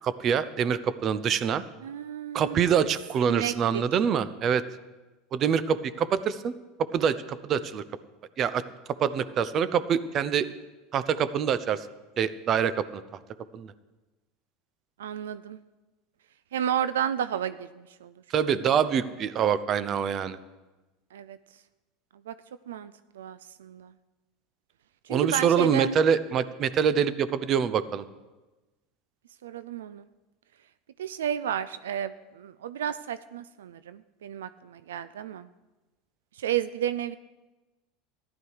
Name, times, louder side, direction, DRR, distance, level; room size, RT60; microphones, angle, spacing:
voice 1, 0.0-1.6 2.3-4.6 5.3-6.5 6.9-7.8 8.4-8.6 9.0-10.5 10.9-11.9 12.2-13.0 13.5-13.7 18.3-20.4 25.1-28.0, right 7 dB, 40° right, 15 dB, 0.7 m, -25 dB
voice 2, 1.8-2.8 3.3-3.8 15.0-15.6 16.5-18.1 21.1-21.4 22.3-22.4 22.7-23.9 25.0-26.0 29.4-30.1 31.0-35.5 36.4-37.2, right 10 dB, 85° right, 14 dB, 0.4 m, -32 dB
14.5 x 11.5 x 4.8 m, 1.1 s
hypercardioid pair, 95°, 0 cm